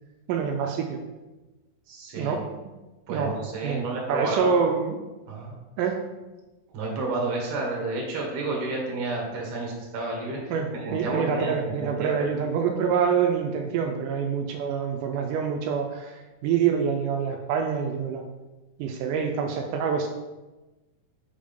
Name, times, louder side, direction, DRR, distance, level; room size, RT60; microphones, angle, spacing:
voice 1, 0.3-1.0 2.2-2.4 3.1-3.3 3.6-5.0 5.8-6.0 10.5-18.2 18.8-20.1, right 6 dB, 85° right, 4 dB, 1.9 m, -26 dB
voice 2, 1.9-2.3 3.1-4.6 5.3-5.5 6.7-10.4 10.8-12.3, right 3 dB, 60° right, -2 dB, 1.6 m, -30 dB
5.4 x 3.6 x 5.1 m, 1.1 s
omnidirectional pair, 4.1 m